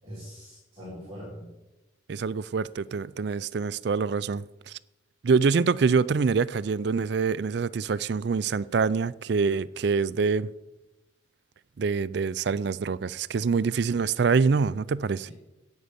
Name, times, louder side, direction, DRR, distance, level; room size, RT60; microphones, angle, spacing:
voice 1, 0.0-1.5 15.2-15.3, equal, 20° right, 4.4 m, -42 dB
voice 2, 2.1-4.7 5.2-10.5 11.8-15.3, right 5 dB, 55° right, 0.4 m, -25 dB
10.5 x 8.8 x 8.2 m
head